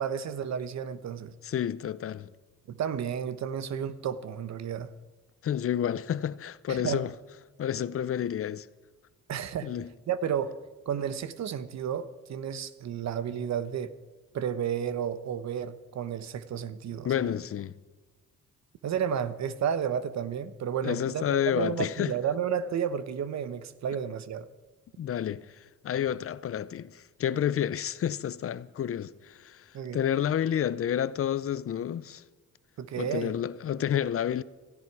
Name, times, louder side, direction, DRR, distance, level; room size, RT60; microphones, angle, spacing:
voice 1, 0.0-1.3 2.7-4.9 6.7-7.0 9.3-9.7 10.1-10.6 10.9-13.9 14.3-17.3 18.8-24.5 29.7-30.0 32.8-33.3, right 8 dB, 65° right, 1.1 m, -32 dB
voice 2, 1.4-2.3 5.4-7.1 7.6-8.7 9.6-9.9 17.0-17.7 20.8-22.1 25.0-32.2 33.0-34.4, left 9 dB, 50° left, 0.6 m, -30 dB
17.0 x 15.5 x 4.8 m
cardioid pair, 90°, 30 cm